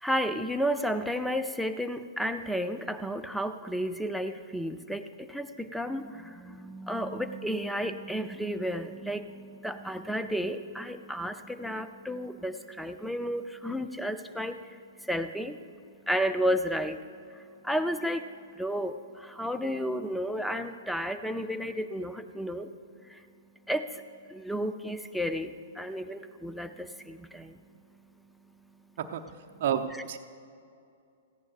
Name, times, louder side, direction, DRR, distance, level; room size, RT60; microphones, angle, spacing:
voice 1, 0.0-14.6 15.0-15.6 16.1-17.0 17.3-18.2 18.6-22.7 23.1-23.2 23.7-24.0 24.3-27.6, equal, ahead, 9 dB, 0.6 m, -32 dB
voice 2, 29.6-30.2, right 9 dB, 50° right, 5 dB, 0.7 m, -30 dB
17.0 x 15.0 x 2.5 m, 2.4 s
figure-of-eight pair, 110°, 0 cm